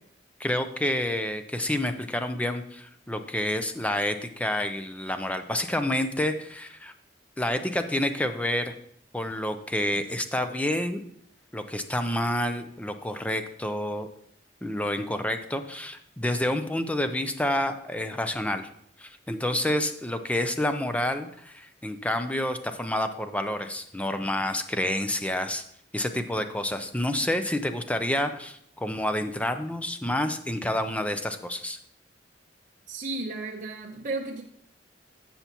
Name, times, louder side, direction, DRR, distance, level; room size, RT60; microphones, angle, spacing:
voice 1, 0.4-6.9 7.4-8.8 9.1-11.0 11.5-14.1 14.6-18.7 19.0-25.6 25.9-31.8, left 1 dB, 5° left, 8 dB, 0.5 m, -29 dB
voice 2, 32.9-34.4, right 3 dB, 45° right, 0 dB, 0.8 m, -33 dB
15.0 x 5.8 x 2.9 m, 0.69 s
head